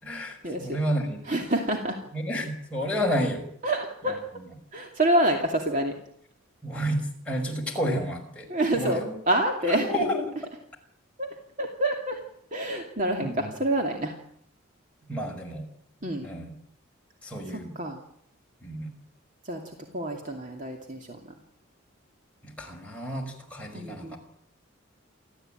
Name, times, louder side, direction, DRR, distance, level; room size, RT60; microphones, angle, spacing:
voice 1, 0.0-1.2 2.1-3.5 4.1-4.4 6.6-8.5 8.7-9.1 9.7-10.4 12.7-12.8 13.2-13.5 15.1-15.6 16.2-16.5 17.2-17.7 18.6-18.9 22.4-24.2, equal, 5° left, -1 dB, 5.6 m, -31 dB
voice 2, 1.3-2.0 3.6-4.2 4.7-5.9 8.5-9.9 11.2-11.3 11.6-12.2 12.5-14.1 16.0-16.3 17.8-18.0 19.5-19.6 19.9-21.2 23.7-24.2, right 1 dB, 40° right, 2 dB, 2.5 m, -27 dB
29.0 x 13.5 x 9.0 m, 0.69 s
head